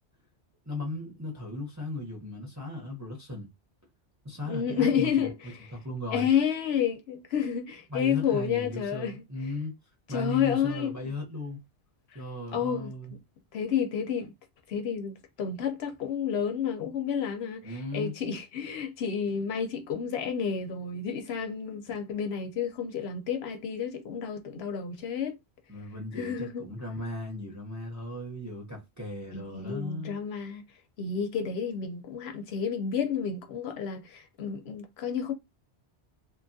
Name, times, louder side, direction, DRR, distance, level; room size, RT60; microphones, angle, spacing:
voice 1, 0.7-3.5 4.2-5.3 5.7-6.3 7.9-9.7 10.1-11.6 12.1-13.2 17.6-18.1 25.7-30.2, left 2 dB, 20° right, 0.6 m, -36 dB
voice 2, 4.4-5.6 6.1-9.2 10.1-11.1 12.1-12.2 12.5-13.2 13.5-14.3 14.7-25.4 26.1-26.6 29.3-30.7 31.0-35.3, left 7 dB, 70° left, 0.8 m, -30 dB
2.8 x 2.3 x 2.6 m
omnidirectional pair, 1.2 m